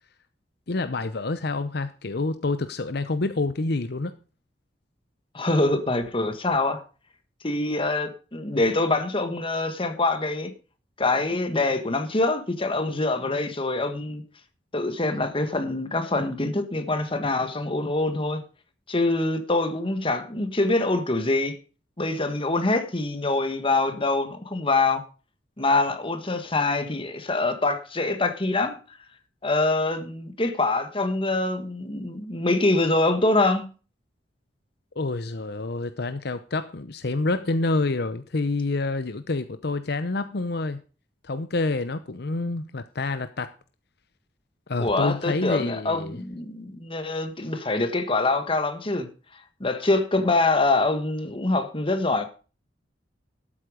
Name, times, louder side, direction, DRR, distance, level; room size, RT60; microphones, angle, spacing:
voice 1, 0.7-4.2 35.0-40.8 41.2-43.5 44.7-46.2, left 3 dB, 65° left, 0.8 m, -27 dB
voice 2, 5.3-6.8 7.4-10.5 11.0-14.2 14.7-18.4 18.9-21.6 22.0-25.0 25.6-28.8 29.4-33.7 44.8-49.1 49.6-52.2, left 2 dB, 30° left, 1.7 m, -24 dB
12.5 x 8.8 x 5.1 m
head